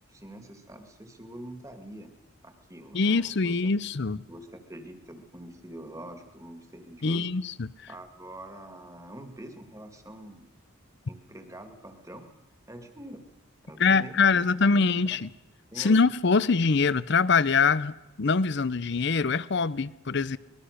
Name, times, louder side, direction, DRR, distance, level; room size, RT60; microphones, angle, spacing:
voice 1, 0.1-2.1 2.4-3.7 4.3-7.3 7.9-10.5 11.1-12.3 12.7-13.2 13.6-14.9 15.7-16.0, right 1 dB, 15° right, 2.0 m, -45 dB
voice 2, 2.9-4.2 7.0-7.7 13.8-15.3 15.8-20.4, left 4 dB, 55° left, 0.6 m, -24 dB
24.0 x 20.5 x 6.6 m
head